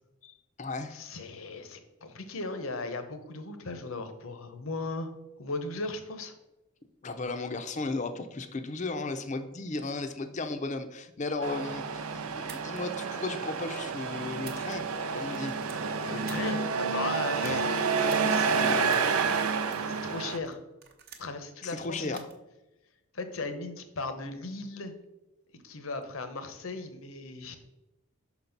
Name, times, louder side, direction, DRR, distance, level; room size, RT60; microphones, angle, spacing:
voice 1, 0.2-1.0 7.0-14.9 15.1-15.5 17.4-17.6 21.6-22.3, left 3 dB, 35° left, 9 dB, 0.5 m, -35 dB
voice 2, 0.9-5.1 5.4-6.3 16.0-17.6 18.0-18.9 19.9-20.6 21.2-22.2 23.1-24.9 25.6-27.6, left 3 dB, 70° left, 8 dB, 0.8 m, -37 dB
Truck, 11.4-20.4, right 5 dB, 85° right, 0.6 m, -29 dB
sound 1, 12.4-12.8 13.5-13.9 14.3-15.0 15.3-16.5 17.3-17.6 18.1-18.4 18.9-19.1 19.7-20.0 20.5-21.4 22.0-22.3, right 7 dB, 45° right, 0.8 m, -49 dB
5.9 x 4.0 x 5.8 m, 0.96 s
head